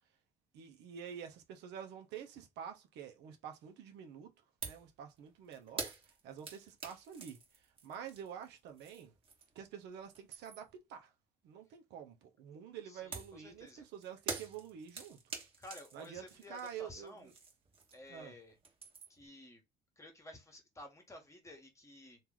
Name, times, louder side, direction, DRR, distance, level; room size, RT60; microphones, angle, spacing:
voice 1, 0.5-4.3 4.6-7.4 7.8-9.1 9.5-11.1 11.4-15.3 15.9-17.3 18.1-18.3, right 8 dB, 85° right, 1.0 m, -48 dB
sound 1, 4.6-4.9 5.2-9.7 10.0-10.8 13.1-18.2 18.5-19.3, right 4 dB, 35° right, 1.3 m, -46 dB
voice 2, 12.8-13.9 15.6-17.3 17.9-18.6 19.1-19.6 20.0-22.2, left 1 dB, 15° left, 1.3 m, -53 dB
3.0 x 2.8 x 3.9 m
cardioid pair, 110°, 17 cm